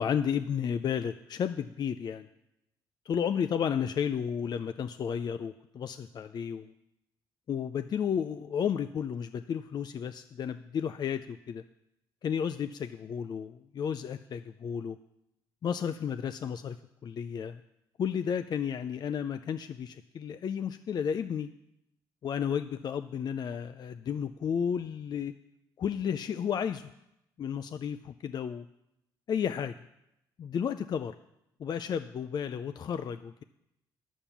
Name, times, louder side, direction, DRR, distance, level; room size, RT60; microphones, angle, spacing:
voice 1, 0.0-2.3 3.1-6.7 7.5-11.6 12.2-15.0 15.6-16.8 17.0-17.6 18.0-21.5 22.2-25.3 25.8-26.9 27.4-28.6 29.3-29.7 30.4-31.1 31.6-33.4, left 8 dB, 50° left, 10 dB, 0.4 m, -32 dB
10.0 x 7.2 x 7.1 m, 0.86 s
cardioid pair, 75°, 9 cm